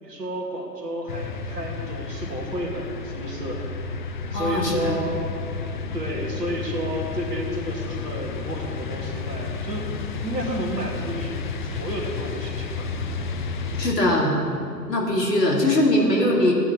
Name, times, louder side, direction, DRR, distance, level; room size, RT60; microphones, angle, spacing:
voice 1, 0.0-3.7 4.3-5.2 5.9-9.9 10.2-12.9, right 1 dB, 70° right, 0 dB, 2.4 m, -31 dB
sound 1, 1.1-13.9, left 4 dB, 30° left, 0.5 m, -31 dB
voice 2, 4.3-5.0 13.8-14.3 14.9-16.5, left 1 dB, 75° left, -1 dB, 2.7 m, -21 dB
16.0 x 9.6 x 3.7 m, 2.5 s
figure-of-eight pair, 120°, 50 cm